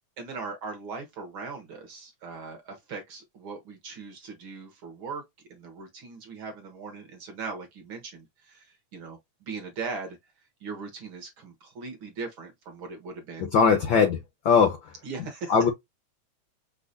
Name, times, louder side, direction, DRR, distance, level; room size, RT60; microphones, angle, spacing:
voice 1, 0.2-5.2 5.5-10.2 10.6-14.1 15.0-15.6, right 4 dB, 55° right, 1.7 m, -39 dB
voice 2, 13.4-14.2 14.4-14.9 15.5-15.7, left 6 dB, 85° left, 1.0 m, -20 dB
5.9 x 3.0 x 2.6 m
omnidirectional pair, 3.3 m